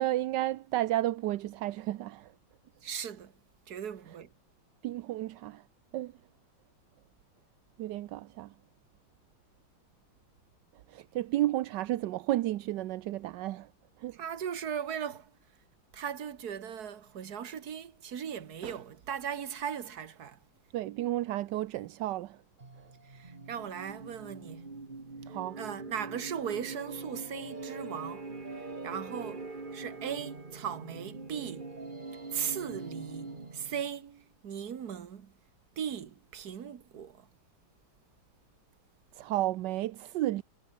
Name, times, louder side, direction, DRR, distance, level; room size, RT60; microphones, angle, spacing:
voice 1, 0.0-2.3 4.8-5.6 5.9-6.1 7.8-8.5 10.9-13.7 14.0-14.1 20.7-22.4 25.3-25.6 39.2-40.4, right 15 dB, 70° right, 1.1 m, -32 dB
voice 2, 2.8-3.3 3.7-4.3 14.1-15.3 15.9-20.4 23.1-24.6 25.6-28.3 28.8-29.5 29.7-31.7 32.3-35.3 35.8-37.3, right 8 dB, 50° right, 1.8 m, -38 dB
sound 1, 22.6-34.0, right 3 dB, 25° right, 2.2 m, -43 dB
omnidirectional pair, 2.2 m